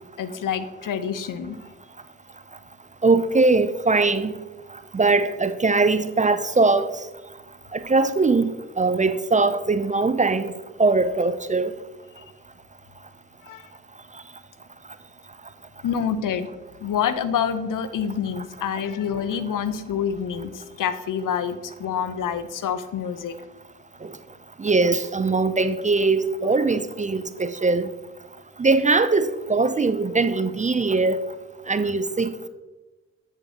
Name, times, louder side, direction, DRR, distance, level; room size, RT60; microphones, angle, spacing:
voice 1, 0.2-1.6 13.4-13.6 15.8-16.5 16.8-23.4, left 8 dB, 65° left, 0.7 m, -27 dB
voice 2, 3.0-4.3 4.9-6.9 7.7-8.5 8.8-10.5 10.8-11.7 24.6-27.9 28.6-31.2 31.7-32.5, right 3 dB, 20° right, 0.4 m, -21 dB
8.0 x 7.1 x 2.8 m
supercardioid pair, 45°, 34 cm